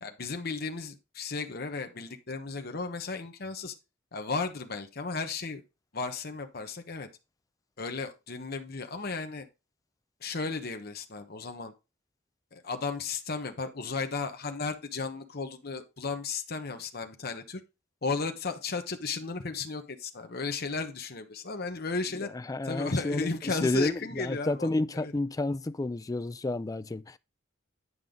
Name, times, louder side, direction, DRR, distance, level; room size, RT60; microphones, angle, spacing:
voice 1, 0.0-3.7 4.1-5.6 5.9-7.1 7.8-9.5 10.2-11.7 12.5-17.6 18.0-22.3 22.6-25.1, left 4 dB, 55° left, 1.0 m, -34 dB
voice 2, 22.3-27.2, left 2 dB, 20° left, 0.3 m, -31 dB
9.8 x 5.5 x 3.7 m
head